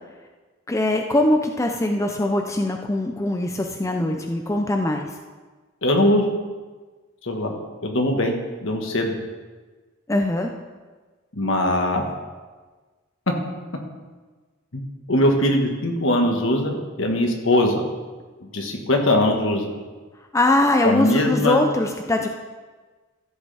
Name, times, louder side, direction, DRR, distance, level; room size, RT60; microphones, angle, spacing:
voice 1, 0.7-5.1 10.1-10.5 20.3-22.3, left 1 dB, 15° left, 3 dB, 0.5 m, -22 dB
voice 2, 5.8-6.3 7.2-7.5 7.8-8.3 8.6-9.2 11.3-12.0 14.7-14.8 15.1-17.8 18.5-19.7 20.8-21.7, left 1 dB, 65° left, 2 dB, 1.4 m, -21 dB
14.0 x 7.7 x 3.4 m, 1.3 s
head